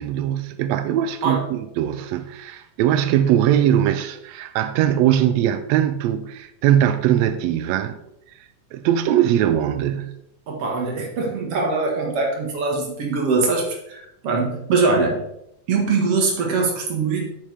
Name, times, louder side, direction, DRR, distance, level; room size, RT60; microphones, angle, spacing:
voice 1, 0.0-8.0 8.7-10.1, right 11 dB, 85° right, 1.5 m, -20 dB
voice 2, 10.5-15.2 15.7-17.2, right 4 dB, 55° right, 2.5 m, -22 dB
9.2 x 7.4 x 3.5 m
omnidirectional pair, 3.6 m